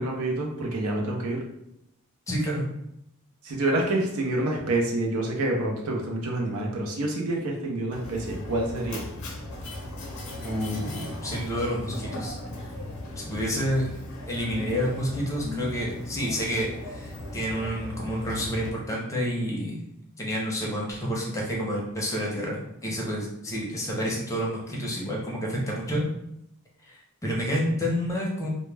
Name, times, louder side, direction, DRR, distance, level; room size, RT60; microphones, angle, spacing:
voice 1, 0.0-1.4 3.4-9.0, right 2 dB, 70° right, 0 dB, 0.6 m, -27 dB
voice 2, 2.3-2.6 10.4-12.4 13.2-13.9 14.3-19.8 20.2-26.0 26.8-26.9 27.2-28.5, equal, 15° left, -3 dB, 0.6 m, -29 dB
Mechanisms, 7.9-18.7, left 1 dB, 70° left, 0.5 m, -37 dB
2.1 x 2.1 x 3.2 m, 0.80 s
head